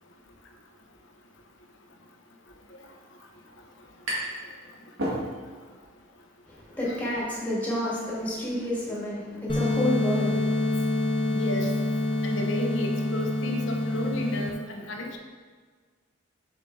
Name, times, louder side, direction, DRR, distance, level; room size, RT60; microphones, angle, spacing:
sound 1, 4.1-4.5 4.8-5.7, right 1 dB, 80° right, 2.0 m, -32 dB
voice 1, 6.5-10.8, left 1 dB, 10° left, -7 dB, 2.1 m, -30 dB
sound 2, 9.5-14.5, left 2 dB, 25° left, 0.7 m, -26 dB
voice 2, 11.3-11.8 12.2-15.2, left 1 dB, 65° left, 3 dB, 0.9 m, -32 dB
6.9 x 6.7 x 3.3 m, 1.5 s
head